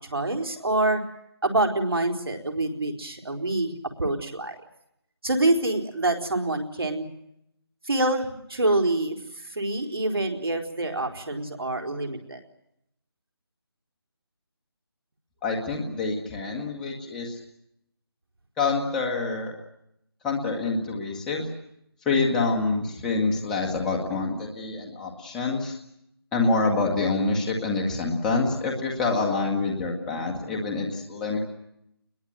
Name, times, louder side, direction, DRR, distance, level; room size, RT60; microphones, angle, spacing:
voice 1, 0.1-1.0 1.4-3.7 4.0-4.6 5.2-7.1 7.8-12.4, right 2 dB, 65° right, 4 dB, 4.3 m, -26 dB
voice 2, 15.4-17.4 18.6-19.5 20.2-21.5 22.1-25.8 26.3-31.4, left 3 dB, 5° left, -1 dB, 1.9 m, -26 dB
29.0 x 21.5 x 7.9 m, 0.79 s
figure-of-eight pair, 170°, 13 cm